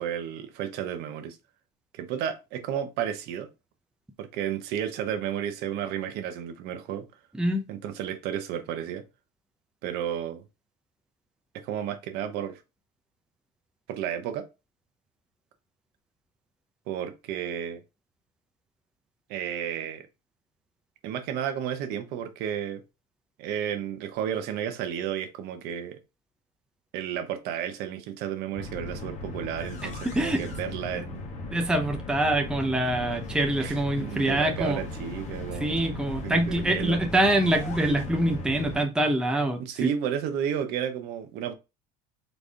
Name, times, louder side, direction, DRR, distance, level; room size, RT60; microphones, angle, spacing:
voice 1, 0.0-1.4 1.9-3.5 4.2-7.1 7.7-9.0 9.8-10.4 11.5-12.6 13.9-14.5 16.9-17.8 19.3-20.1 21.0-22.8 23.4-26.0 26.9-31.3 33.6-35.8 36.2-37.0 39.6-41.5, right 9 dB, 60° right, 1.0 m, -32 dB
sound 1, 28.5-38.8, left 2 dB, 40° left, 1.1 m, -37 dB
voice 2, 31.5-34.8 35.6-39.6, right 1 dB, 5° right, 0.6 m, -25 dB
4.1 x 3.4 x 3.4 m
cardioid pair, 135°, 19 cm